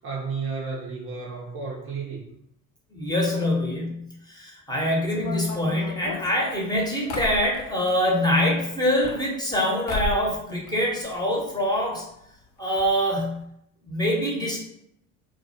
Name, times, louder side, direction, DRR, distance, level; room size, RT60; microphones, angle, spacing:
voice 1, 0.0-2.3, right 5 dB, 35° right, -2 dB, 0.5 m, -32 dB
voice 2, 2.9-12.1 12.6-13.5 13.8-14.6, equal, 10° left, -2 dB, 0.7 m, -25 dB
sound 1, 5.0-8.0 8.8-9.6 9.9-10.3 10.6-11.4 11.7-11.8 12.0-12.1 12.8-12.9 13.2-13.4, left 3 dB, 55° left, 0.6 m, -34 dB
2.3 x 2.1 x 2.6 m, 0.76 s
hypercardioid pair, 65°, 41 cm